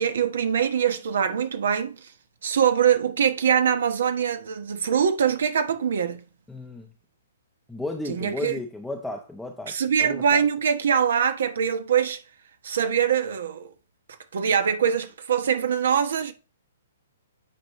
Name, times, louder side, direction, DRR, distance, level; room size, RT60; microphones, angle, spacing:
voice 1, 0.0-2.0 2.4-6.2 8.1-8.5 9.7-12.2 12.6-13.7 14.3-16.3, right 8 dB, 70° right, 1.2 m, -23 dB
voice 2, 6.5-6.9 7.7-10.4, left 2 dB, 5° left, 0.7 m, -34 dB
9.2 x 4.2 x 3.1 m
hypercardioid pair, 140°, 0 cm